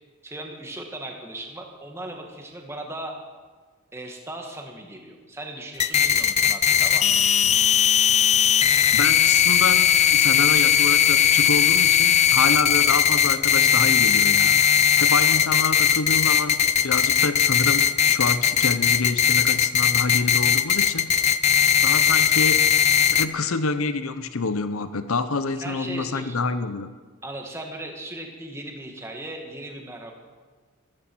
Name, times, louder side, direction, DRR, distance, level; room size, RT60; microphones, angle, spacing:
voice 1, 0.2-3.1 3.9-7.1 25.6-26.4 27.2-30.1, right 1 dB, 10° right, 2 dB, 1.8 m, -37 dB
sound 1, 5.8-23.3, left 8 dB, 30° left, 0.4 m, -19 dB
voice 2, 8.9-9.8 10.1-16.6 16.8-21.2 21.8-22.7 23.1-26.9, left 4 dB, 75° left, 12 dB, 0.8 m, -27 dB
14.5 x 14.5 x 6.1 m, 1.4 s
head